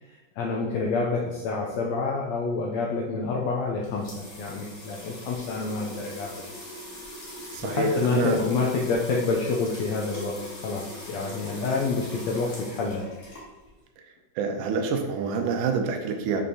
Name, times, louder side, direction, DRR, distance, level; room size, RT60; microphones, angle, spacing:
voice 1, 0.0-6.4 7.6-13.0, left 4 dB, 80° left, -1 dB, 1.6 m, -28 dB
sound 1, 3.5-13.8, equal, 55° left, 0.8 m, -41 dB
voice 2, 7.5-8.4 14.4-16.4, right 5 dB, 85° right, 4 dB, 2.2 m, -27 dB
6.4 x 5.3 x 2.9 m, 1.1 s
omnidirectional pair, 3.6 m